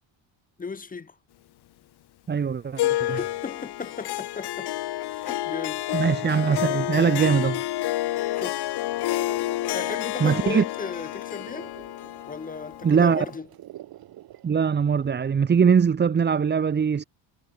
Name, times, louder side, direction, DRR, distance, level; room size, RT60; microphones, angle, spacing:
voice 1, 0.6-1.2 3.0-4.7 5.1-5.9 8.3-8.7 9.7-11.7 12.3-13.5, left 5 dB, 20° left, 4.9 m, -36 dB
voice 2, 2.3-3.2 5.9-7.6 10.2-10.6 12.8-13.3 14.4-17.0, right 6 dB, 20° right, 2.0 m, -21 dB
Harp, 2.8-13.4, left 15 dB, 55° left, 6.5 m, -29 dB
sound 1, 5.2-15.5, right 14 dB, 50° right, 6.5 m, -48 dB
cardioid pair, 155°, 46 cm